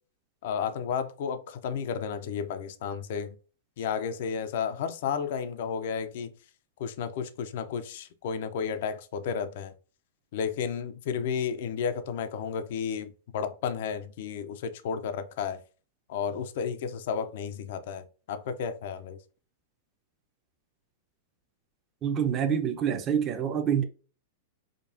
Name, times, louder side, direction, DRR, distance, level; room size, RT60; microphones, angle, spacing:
voice 1, 0.4-3.4 3.8-6.3 6.8-9.7 10.3-15.6 16.1-19.2, left 7 dB, 60° left, 0.5 m, -32 dB
voice 2, 22.0-23.8, right 8 dB, 25° right, 0.7 m, -26 dB
5.0 x 2.3 x 2.7 m
hypercardioid pair, 140°, 0 cm